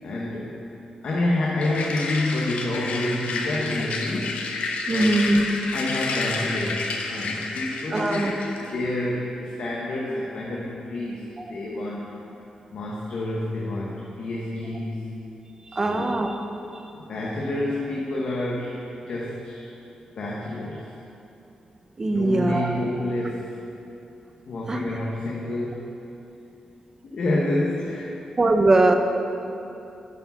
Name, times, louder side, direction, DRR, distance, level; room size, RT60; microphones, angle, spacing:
voice 1, 0.0-0.6 1.0-4.5 4.9-5.1 5.7-11.2 11.5-12.1 12.7-15.0 15.7-16.1 16.9-19.7 20.2-20.8 22.1-23.6 24.4-25.8 27.0-28.1, left 1 dB, 60° left, -3 dB, 0.9 m, -28 dB
sound 1, 1.6-8.7, left 4 dB, 85° left, 0.7 m, -30 dB
voice 2, 4.9-5.4 7.9-8.3 15.7-16.5 22.0-22.7 24.7-24.8 28.4-28.9, right 2 dB, 25° right, 5 dB, 0.5 m, -21 dB
9.6 x 4.7 x 5.4 m, 2.9 s
wide cardioid pair, 165°, 2 cm